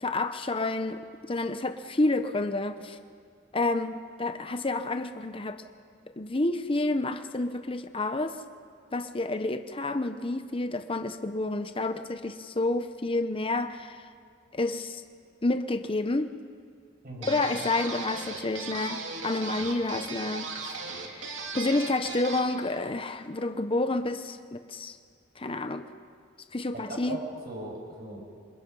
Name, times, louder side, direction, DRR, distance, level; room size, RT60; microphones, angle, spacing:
voice 1, 0.0-1.0 1.3-3.0 3.5-5.6 6.2-8.4 8.9-14.0 14.5-15.0 15.4-16.3 17.2-25.0 25.4-25.8 26.5-27.2, left 2 dB, 30° left, 9 dB, 0.8 m, -29 dB
voice 2, 17.0-17.4 26.7-28.2, right 1 dB, 50° right, -1 dB, 6.8 m, -39 dB
sound 1, 17.2-22.5, right 4 dB, 70° right, 2.8 m, -37 dB
27.0 x 26.0 x 5.5 m, 2.1 s
head